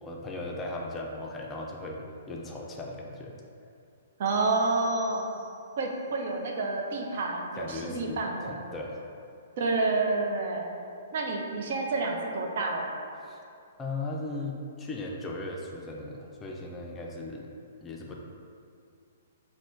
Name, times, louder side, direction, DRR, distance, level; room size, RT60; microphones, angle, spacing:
voice 1, 0.0-3.3 7.6-9.0 13.2-13.4 13.8-17.5 17.8-18.2, left 2 dB, 15° left, -1 dB, 0.4 m, -37 dB
voice 2, 4.2-5.3 5.8-8.6 9.6-10.7 11.1-12.9, right 3 dB, 55° right, 1 dB, 0.5 m, -29 dB
sound 1, 4.3-5.8, right 3 dB, 15° right, 0.8 m, -52 dB
4.1 x 2.1 x 4.4 m, 2.5 s
hypercardioid pair, 125°, 0 cm